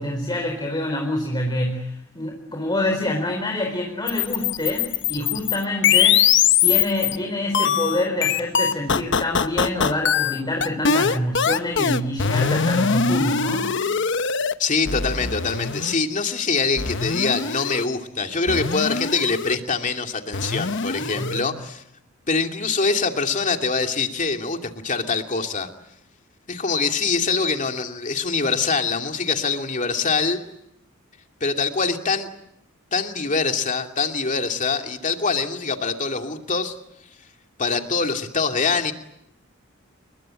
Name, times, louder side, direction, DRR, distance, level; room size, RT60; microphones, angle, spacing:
voice 1, 0.0-6.3 6.6-13.7 21.0-21.6, left 1 dB, 20° left, 2 dB, 4.4 m, -26 dB
sound 1, 4.1-7.2 7.5-14.5 14.9-16.0 16.8-17.9 18.5-19.6 20.3-21.4, left 7 dB, 65° left, 1.1 m, -22 dB
voice 2, 14.6-21.8 22.3-25.7 26.5-30.4 31.4-32.3 32.9-36.8 37.6-38.9, left 4 dB, 40° left, 5 dB, 2.6 m, -24 dB
29.0 x 22.5 x 8.9 m, 0.79 s
head